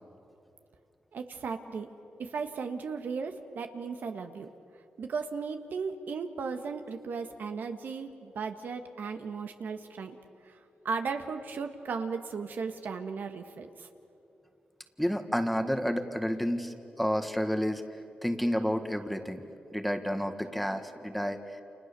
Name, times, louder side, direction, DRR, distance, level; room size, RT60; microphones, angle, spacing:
voice 1, 1.1-1.9 2.2-4.5 5.0-10.2 10.5-10.6 10.9-13.9, right 5 dB, 70° right, 6 dB, 1.7 m, -36 dB
voice 2, 15.0-17.8 18.2-19.4 19.7-21.4, equal, ahead, 7 dB, 1.7 m, -30 dB
29.5 x 28.5 x 7.0 m, 2.8 s
wide cardioid pair, 110°, 3 cm